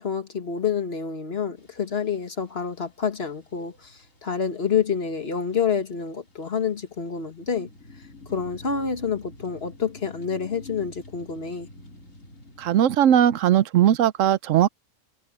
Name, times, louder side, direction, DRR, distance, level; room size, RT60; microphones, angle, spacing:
voice 1, 0.0-7.7 8.3-11.7, left 6 dB, 50° left, 1.8 m, -28 dB
sound 1, 1.6-12.8, left 2 dB, 80° left, 4.4 m, -49 dB
voice 2, 12.6-14.7, right 10 dB, 80° right, 1.0 m, -19 dB
omnidirectional pair, 1.3 m